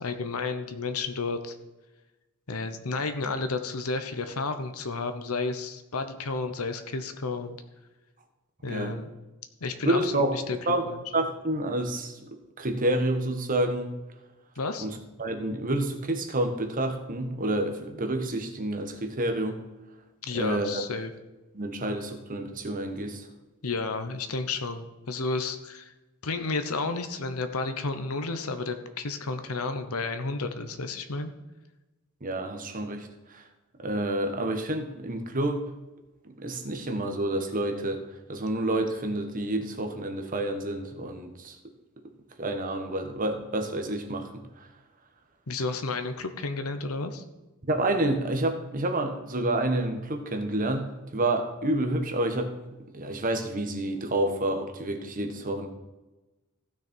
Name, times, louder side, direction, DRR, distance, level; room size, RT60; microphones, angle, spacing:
voice 1, 0.0-1.5 2.5-7.6 8.6-9.1 9.6-10.6 10.9-11.0 14.6-14.9 20.2-21.1 23.6-25.9 26.2-31.3 45.5-47.2, left 3 dB, 85° left, 8 dB, 1.0 m, -32 dB
voice 2, 9.8-10.9 11.1-13.9 14.8-19.6 20.3-20.8 21.5-23.3 32.2-33.4 33.8-35.6 36.4-38.0 38.3-41.6 42.4-44.7 47.7-52.5 52.9-55.7, right 1 dB, 40° right, 5 dB, 1.3 m, -29 dB
15.0 x 6.5 x 4.5 m, 1.1 s
head